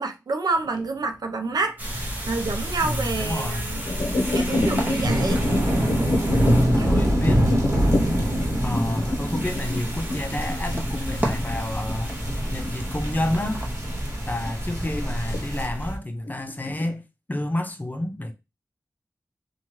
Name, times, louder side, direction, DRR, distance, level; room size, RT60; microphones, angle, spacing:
voice 1, 0.0-3.8 4.3-5.4 6.4-7.3, right 3 dB, 70° right, 0.4 m, -29 dB
sound 1, 0.6-1.7 2.3-2.7 3.5-14.5 14.9-15.4 15.7-15.8 16.3-16.9, left 1 dB, 80° left, 0.6 m, -28 dB
sound 2, 1.8-16.0, equal, 25° right, 0.7 m, -31 dB
sound 3, 1.8-15.7, right 1 dB, 40° right, 1.4 m, -27 dB
voice 2, 2.8-3.7 6.3-7.7 8.6-12.1 12.5-13.6 14.3-17.0 17.3-18.3, left 1 dB, 25° left, 0.5 m, -29 dB
2.8 x 2.2 x 3.0 m
wide cardioid pair, 75°, 7 cm